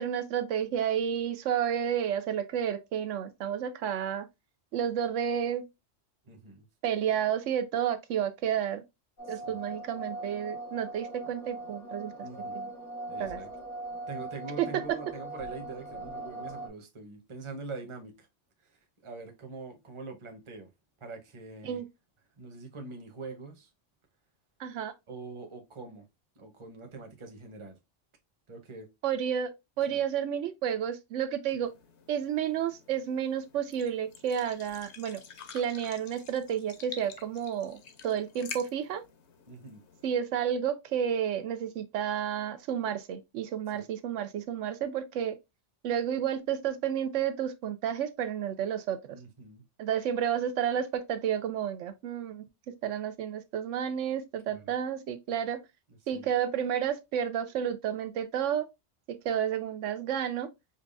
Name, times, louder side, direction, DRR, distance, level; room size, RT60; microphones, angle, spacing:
voice 1, 0.0-4.3 4.7-5.6 6.8-8.8 9.3-12.1 12.5-12.7 13.2-13.4 14.6-14.7 21.6-21.8 24.6-24.9 29.0-29.5 29.8-31.7 32.1-35.2 35.5-39.0 40.0-45.3 45.8-49.2 49.8-52.4 52.8-55.6 56.1-58.7 59.1-60.5, right 9 dB, 90° right, 1.0 m, -31 dB
voice 2, 6.2-6.6 9.3-9.6 12.2-12.6 13.1-13.5 14.1-18.3 18.6-18.8 19.0-20.7 21.0-21.8 22.4-23.7 25.1-26.1 26.4-27.8 28.5-28.9 29.9-30.0 31.5-31.6 39.5-39.8 43.7-43.9 49.1-49.6 54.5-54.7 56.1-56.3, right 3 dB, 30° right, 0.8 m, -44 dB
sound 1, 9.2-16.7, right 2 dB, 90° left, 2.0 m, -40 dB
sound 2, 31.6-40.2, left 6 dB, 70° left, 0.9 m, -49 dB
5.3 x 2.3 x 2.5 m
omnidirectional pair, 1.2 m